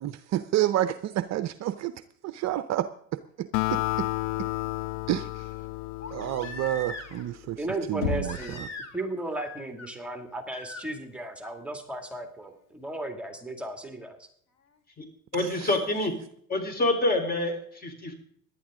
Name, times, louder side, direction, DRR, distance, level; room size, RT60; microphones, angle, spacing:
voice 1, 0.0-1.9 2.3-2.9 3.4-4.1 5.1-5.3 6.1-7.6 7.9-8.4, right 13 dB, 40° right, 12 dB, 0.7 m, -29 dB
Crying sobbing, 3.3-3.4 6.0-7.3 8.2-9.1 9.4-9.9 10.5-10.8 12.4-12.5, left 2 dB, 40° left, 2.5 m, -41 dB
Acoustic guitar, 3.5-7.1, left 22 dB, 55° left, 0.5 m, -31 dB
voice 2, 7.6-8.7 8.9-14.3, right 1 dB, 5° right, 4 dB, 2.3 m, -35 dB
Knock, 8.0-8.7, left 5 dB, 80° left, 2.4 m, -30 dB
voice 3, 15.3-16.1 16.5-18.1, left 2 dB, 20° left, 5 dB, 3.9 m, -27 dB
18.0 x 11.5 x 3.7 m, 0.63 s
hypercardioid pair, 90°, 41 cm